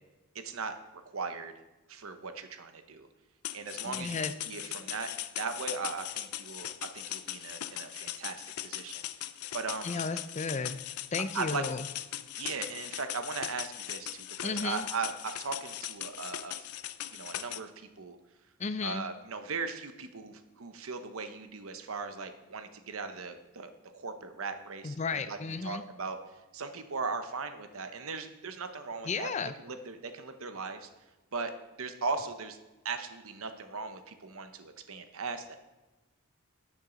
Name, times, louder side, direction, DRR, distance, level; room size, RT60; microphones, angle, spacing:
voice 1, 0.4-0.7 1.1-1.5 1.9-3.1 3.5-5.1 5.4-9.0 9.5-10.0 11.3-11.6 12.4-16.7 17.1-18.2 18.8-25.4 25.6-26.2 26.5-29.3 29.6-30.9 31.3-31.5 31.8-32.6 32.8-35.6, right 4 dB, 70° right, 8 dB, 0.9 m, -38 dB
sound 1, 3.4-17.6, left 13 dB, 85° left, 0.5 m, -39 dB
voice 2, 3.8-4.3 9.8-10.8 11.1-11.9 14.4-14.9 18.6-19.1 24.8-25.8 29.0-29.5, left 4 dB, 30° left, 12 dB, 0.5 m, -34 dB
12.0 x 7.4 x 3.9 m, 1.1 s
head